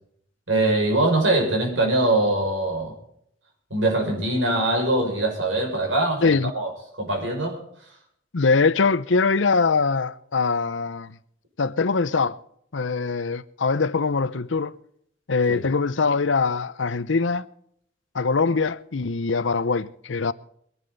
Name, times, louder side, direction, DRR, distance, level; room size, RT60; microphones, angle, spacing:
voice 1, 0.5-2.9 3.7-6.7 7.0-7.6 15.5-15.6, right 2 dB, 90° right, 6.2 m, -22 dB
voice 2, 8.3-11.1 11.6-12.4 12.7-14.8 15.3-17.4 18.1-20.3, left 4 dB, 75° left, 0.7 m, -22 dB
23.0 x 11.0 x 4.1 m
head